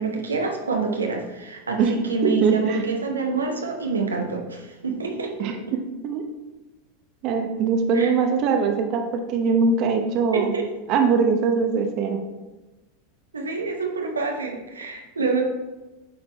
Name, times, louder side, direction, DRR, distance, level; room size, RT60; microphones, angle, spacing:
voice 1, 0.0-5.5 7.9-8.1 10.3-10.7 13.3-15.4, right 4 dB, 85° right, 2 dB, 0.8 m, -27 dB
voice 2, 2.2-2.8 5.4-6.2 7.2-10.5 10.9-12.2, right 5 dB, 50° right, 4 dB, 0.8 m, -22 dB
8.5 x 4.3 x 3.3 m, 1.1 s
hypercardioid pair, 90°, 0 cm